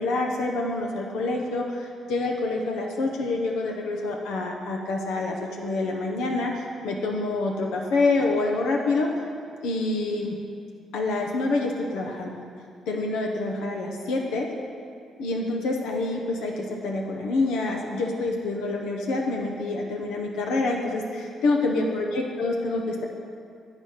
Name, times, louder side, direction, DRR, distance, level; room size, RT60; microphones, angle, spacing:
voice 1, 0.0-9.1 9.6-10.4 10.9-12.4 12.9-14.5 15.2-23.0, left 2 dB, 90° left, 0 dB, 0.7 m, -27 dB
8.3 x 4.9 x 5.6 m, 2.4 s
cardioid pair, 90°, 0 cm